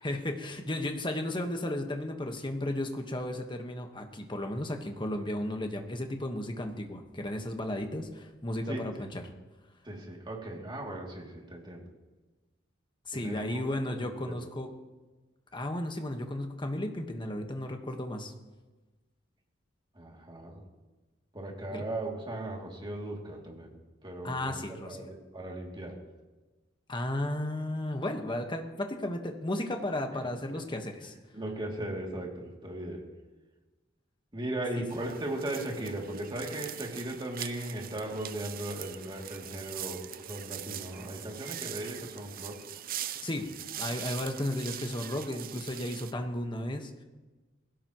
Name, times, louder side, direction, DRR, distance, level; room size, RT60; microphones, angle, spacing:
voice 1, 0.0-9.2 13.0-14.7 15.5-18.3 21.7-21.8 24.2-25.1 26.9-31.1 43.2-43.5 43.8-47.0, left 1 dB, 25° left, 4 dB, 1.4 m, -34 dB
voice 2, 8.7-9.1 9.8-11.9 13.1-14.4 19.9-20.6 21.3-26.0 30.2-30.6 31.3-33.1 34.3-42.6, right 1 dB, 25° right, -1 dB, 2.8 m, -38 dB
sound 1, 34.9-46.1, right 11 dB, 45° right, 0.5 m, -42 dB
20.5 x 17.0 x 3.1 m, 1.2 s
head